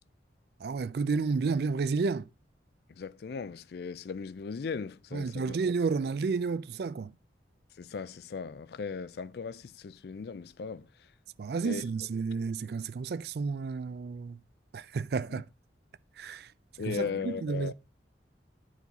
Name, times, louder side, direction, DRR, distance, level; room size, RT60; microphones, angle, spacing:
voice 1, 0.6-2.3 5.1-7.1 11.4-14.4 14.7-15.5 16.2-16.5 16.9-17.7, right 4 dB, 55° right, 0.4 m, -31 dB
voice 2, 2.9-5.6 7.8-11.1 11.6-11.8 15.3-15.4 16.8-17.7, left 5 dB, 60° left, 0.4 m, -38 dB
10.5 x 4.7 x 4.1 m
head